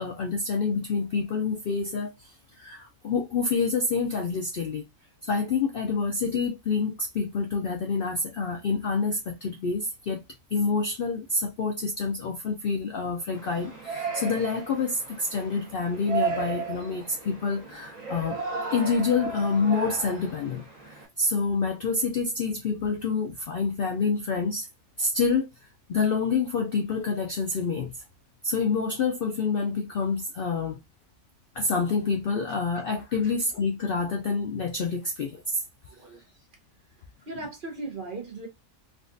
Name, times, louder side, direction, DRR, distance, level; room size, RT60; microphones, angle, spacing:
voice 1, 0.0-4.9 5.2-10.2 10.5-18.4 18.7-20.6 20.9-24.7 25.0-25.5 25.9-27.9 28.4-30.8 31.5-35.6, left 4 dB, 65° left, 0.5 m, -27 dB
Yell, 13.3-21.1, right 5 dB, 75° right, 1.5 m, -35 dB
voice 2, 35.9-36.2 37.3-38.5, right 2 dB, 45° right, 0.8 m, -37 dB
3.6 x 2.4 x 2.5 m
omnidirectional pair, 1.4 m